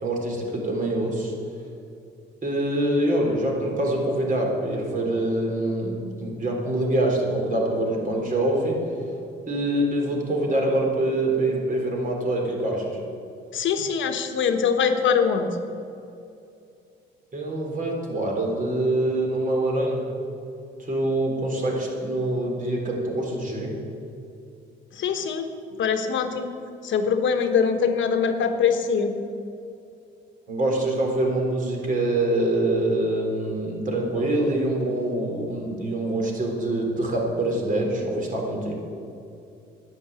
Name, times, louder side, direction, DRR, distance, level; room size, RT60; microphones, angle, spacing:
voice 1, 0.0-1.4 2.4-8.8 9.5-13.0 17.3-20.1 20.8-23.8 30.5-38.8, right 1 dB, 40° right, 0 dB, 3.9 m, -25 dB
voice 2, 13.5-15.6 24.9-25.5 25.8-26.5 26.8-29.1, left 6 dB, 75° left, 7 dB, 1.3 m, -23 dB
11.0 x 9.8 x 8.3 m, 2.6 s
cardioid pair, 90°, 20 cm